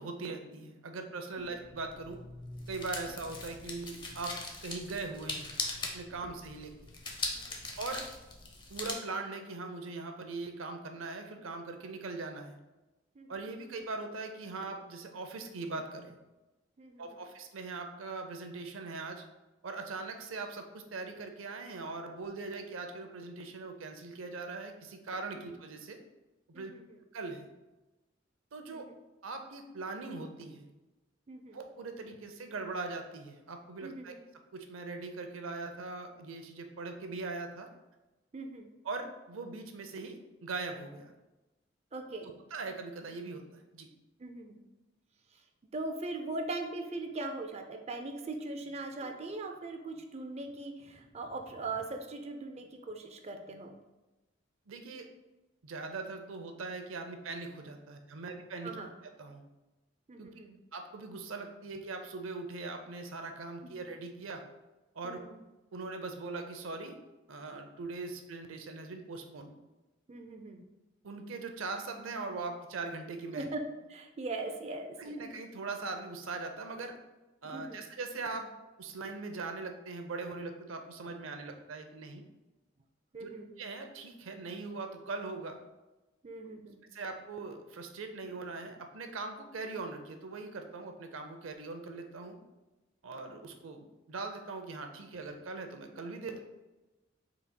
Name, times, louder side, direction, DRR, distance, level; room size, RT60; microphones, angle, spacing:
voice 1, 0.0-2.2 2.7-4.4 4.6-5.5 5.9-6.9 7.8-8.1 8.7-12.6 13.3-16.2 17.0-19.2 19.6-26.0 26.5-26.7 27.1-27.5 28.5-28.9 29.2-30.7 31.5-37.7 38.8-41.1 42.5-43.9 49.0-49.1 54.7-55.1 55.6-58.8 59.0-59.4 60.2-60.3 60.7-64.4 64.9-65.2 65.7-67.0 67.3-69.5 71.0-73.5 75.0-77.0 77.4-78.5 78.8-82.2 83.2-83.3 83.6-85.6 86.4-86.6 86.9-92.4 93.0-96.4, right 3 dB, 90° right, 6 dB, 0.6 m, -41 dB
sound 1, 1.4-8.9, left 3 dB, 25° left, 0.6 m, -41 dB
voice 2, 16.8-17.2 25.3-25.4 26.5-27.0 28.7-28.9 31.3-31.6 33.8-34.1 38.3-38.7 41.9-42.4 44.2-44.6 45.7-53.8 58.6-58.9 60.1-60.6 65.0-65.4 70.1-70.6 73.3-73.6 73.9-75.1 77.4-77.8 83.1-83.5 86.2-86.8, right 2 dB, 35° right, 5 dB, 0.4 m, -40 dB
5.7 x 4.0 x 2.2 m, 1.1 s
head